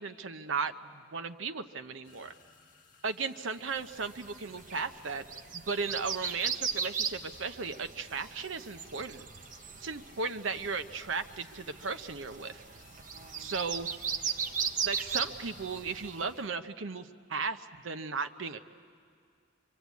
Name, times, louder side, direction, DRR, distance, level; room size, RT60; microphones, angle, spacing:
voice 1, 0.0-2.3 3.0-5.2 5.5-9.3 9.8-12.6 13.4-13.9 14.8-18.6, right 4 dB, 80° right, 10 dB, 0.8 m, -36 dB
sound 1, 2.0-15.8, left 4 dB, 40° left, 1.8 m, -60 dB
sound 2, 3.9-16.4, right 6 dB, 40° right, 0.9 m, -38 dB
25.5 x 23.0 x 8.3 m, 2.3 s
head